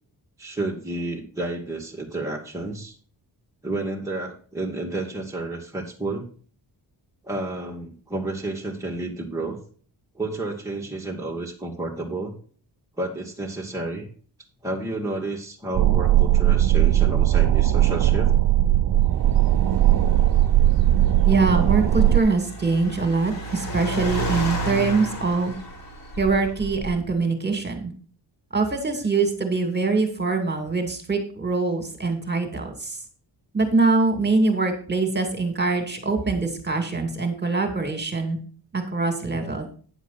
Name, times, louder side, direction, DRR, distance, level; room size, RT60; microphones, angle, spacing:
voice 1, 0.4-3.0 3.6-6.3 7.2-9.6 10.2-12.3 13.0-14.1 14.6-18.3, right 2 dB, 5° right, -3 dB, 1.9 m, -31 dB
sound 1, 15.7-22.2, right 13 dB, 50° right, 0.6 m, -18 dB
Car, 19.2-27.1, right 1 dB, 50° left, 3.9 m, -33 dB
voice 2, 21.2-25.5 26.2-27.9 28.5-33.0 33.5-38.4 38.7-39.7, right 3 dB, 25° right, 5 dB, 2.4 m, -23 dB
9.9 x 7.3 x 4.1 m, 0.42 s
wide cardioid pair, 130°, 43 cm